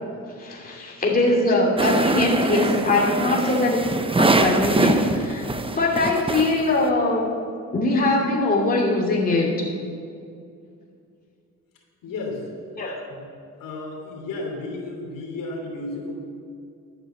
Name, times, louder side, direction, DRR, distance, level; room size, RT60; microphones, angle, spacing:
voice 1, 0.4-3.8 4.2-5.5 5.8-7.3 7.7-9.7 12.8-13.0, left 2 dB, 25° left, -3 dB, 2.7 m, -22 dB
voice 2, 1.1-1.9 3.2-3.7 12.0-12.5 13.1-13.2 13.6-16.1, left 2 dB, 75° left, 0 dB, 3.0 m, -33 dB
sound 1, 1.8-6.9, right 2 dB, 15° right, 0.8 m, -23 dB
12.0 x 9.1 x 7.8 m, 2.4 s
cardioid pair, 105°, 34 cm